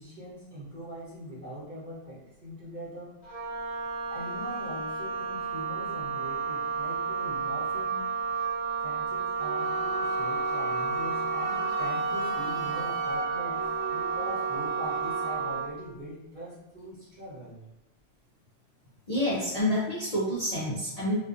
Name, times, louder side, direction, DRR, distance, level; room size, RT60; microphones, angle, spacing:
voice 1, 0.0-3.1 4.1-8.1 8.8-17.6, equal, 45° right, -8 dB, 0.8 m, -41 dB
Wind instrument woodwind instrument, 3.2-15.7, right 6 dB, 15° left, 1.1 m, -32 dB
Wind instrument woodwind instrument 2, 9.4-15.4, equal, 85° right, 1.1 m, -35 dB
voice 2, 19.1-21.2, left 1 dB, 45° left, -8 dB, 0.5 m, -28 dB
2.5 x 2.3 x 2.4 m, 0.94 s
omnidirectional pair, 1.3 m